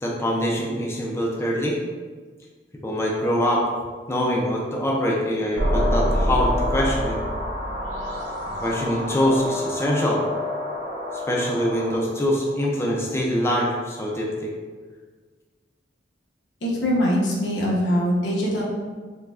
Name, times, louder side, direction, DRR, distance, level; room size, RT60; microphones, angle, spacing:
voice 1, 0.0-1.8 2.8-3.7 4.1-7.2 8.6-10.2 11.3-14.5, equal, 15° left, -3 dB, 0.4 m, -24 dB
sound 1, 5.6-12.0, equal, 80° right, 1.1 m, -26 dB
voice 2, 16.6-18.6, equal, 85° left, -5 dB, 0.9 m, -22 dB
4.6 x 2.2 x 2.4 m, 1.5 s
head